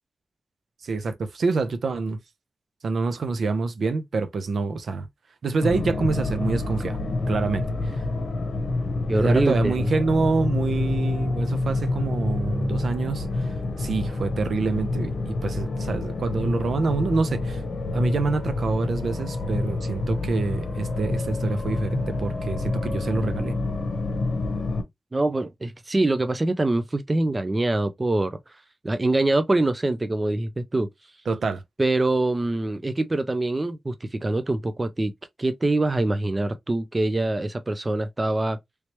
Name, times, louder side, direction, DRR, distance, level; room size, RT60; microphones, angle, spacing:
voice 1, 0.8-2.2 2.8-5.1 5.4-7.0 7.3-8.0 9.1-17.6 17.9-23.6 31.3-31.6, right 4 dB, 75° right, 0.6 m, -26 dB
sound 1, 5.6-24.8, left 2 dB, 65° left, 0.8 m, -27 dB
voice 2, 9.1-9.9 25.1-28.4 28.8-30.9 31.8-35.1 35.4-38.6, right 2 dB, 25° right, 0.4 m, -24 dB
3.1 x 2.9 x 3.0 m
wide cardioid pair, 140°, 0 cm